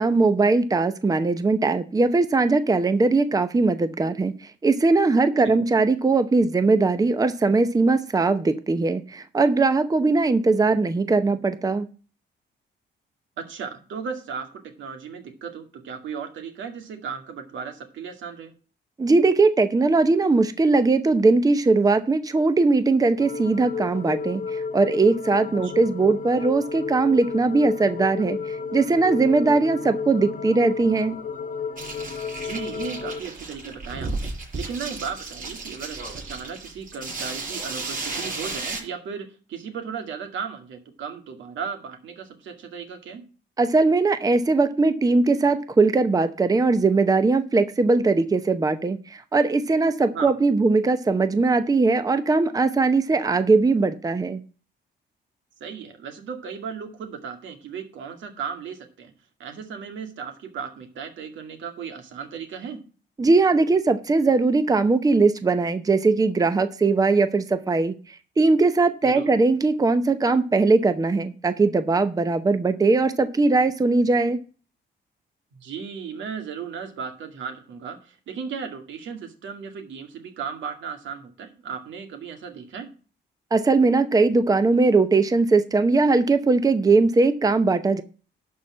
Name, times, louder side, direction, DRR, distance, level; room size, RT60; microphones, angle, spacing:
voice 1, 0.0-11.9 19.0-31.2 43.6-54.4 63.2-74.4 83.5-88.0, right 3 dB, 20° right, 11 dB, 0.7 m, -20 dB
voice 2, 13.4-18.5 25.6-25.7 32.4-43.2 50.1-50.3 55.6-59.1 59.4-62.8 69.0-69.3 75.6-82.9, right 6 dB, 85° right, 5 dB, 2.1 m, -35 dB
sound 1, 23.2-33.2, left 5 dB, 45° left, 0.6 m, -32 dB
sound 2, 31.8-38.8, right 3 dB, 45° right, 5.8 m, -34 dB
12.0 x 4.4 x 7.4 m, 0.37 s
cardioid pair, 115°, 19 cm